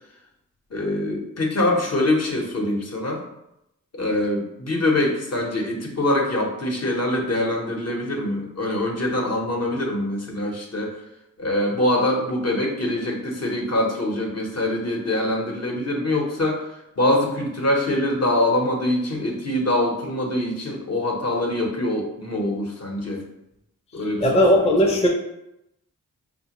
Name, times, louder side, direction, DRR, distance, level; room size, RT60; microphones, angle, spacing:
voice 1, 0.7-3.2 3.9-11.0 11.4-23.2 23.9-24.4 24.8-24.9, left 1 dB, 50° left, 0 dB, 0.8 m, -24 dB
voice 2, 24.2-25.1, equal, 20° left, -1 dB, 0.6 m, -17 dB
4.1 x 2.1 x 2.9 m, 0.85 s
cardioid pair, 55°, 33 cm